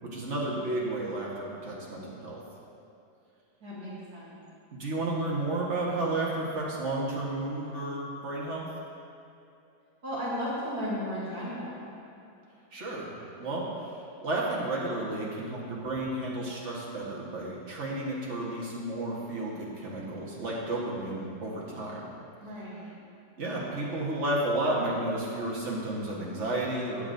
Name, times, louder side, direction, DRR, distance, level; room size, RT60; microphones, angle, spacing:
voice 1, 0.0-2.4 4.7-8.7 12.7-22.1 23.4-27.1, right 2 dB, 45° right, -5 dB, 1.7 m, -32 dB
voice 2, 3.6-4.4 10.0-12.0 22.4-23.0, equal, 60° right, -9 dB, 2.4 m, -35 dB
12.5 x 8.2 x 2.7 m, 2.7 s
omnidirectional pair, 1.8 m